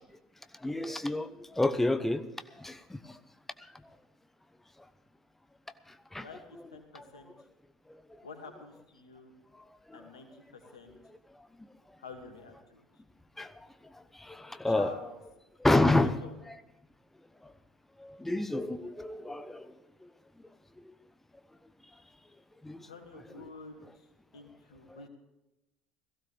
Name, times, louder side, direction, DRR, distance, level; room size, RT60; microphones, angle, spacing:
voice 1, 0.6-2.2 2.6-3.2 6.1-6.2 9.9-10.0 13.4-13.7 13.9-14.9 15.6-16.1 17.4-17.5 18.0-19.7 22.6-22.9, left 2 dB, 10° left, 10 dB, 1.0 m, -29 dB
voice 2, 6.2-7.5 8.2-9.3 9.9-11.0 12.0-13.0 14.6-15.2 16.0-16.3 22.8-25.1, left 3 dB, 85° left, 5 dB, 2.3 m, -48 dB
17.5 x 15.5 x 3.5 m, 0.98 s
hypercardioid pair, 70°, 3 cm